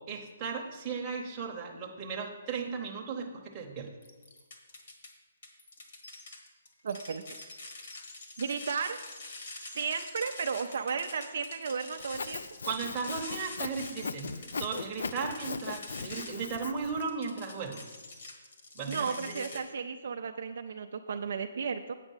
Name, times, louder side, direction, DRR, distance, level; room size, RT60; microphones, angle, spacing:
voice 1, 0.1-3.9 12.7-17.8 18.7-19.6, right 5 dB, 15° right, -1 dB, 0.9 m, -36 dB
sound 1, 4.0-5.1 5.4-19.6, left 2 dB, 45° left, 1.5 m, -46 dB
voice 2, 6.8-7.2 8.4-9.0 9.7-12.4 18.9-21.9, right 5 dB, 50° right, 6 dB, 0.4 m, -34 dB
Sawing, 12.0-17.1, left 4 dB, 65° left, 0.4 m, -39 dB
8.2 x 4.9 x 7.2 m, 1.3 s
hypercardioid pair, 175°, 0 cm